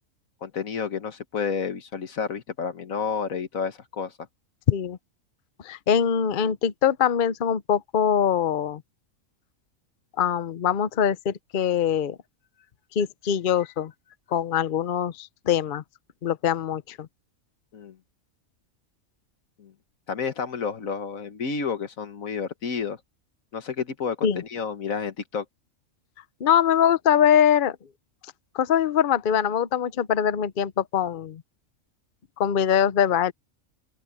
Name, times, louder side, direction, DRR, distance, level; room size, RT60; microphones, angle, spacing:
voice 1, 0.4-4.1 17.7-18.0 19.6-19.7 20.1-23.0 23.5-25.5, left 6 dB, 75° left, 1.8 m, -30 dB
voice 2, 4.7-5.0 5.6-8.8 10.2-12.2 13.0-13.9 14.3-15.8 16.2-17.1 24.2-24.4 26.4-27.8 28.5-31.4 32.4-33.3, left 8 dB, 50° left, 0.7 m, -23 dB
open air
omnidirectional pair, 1.4 m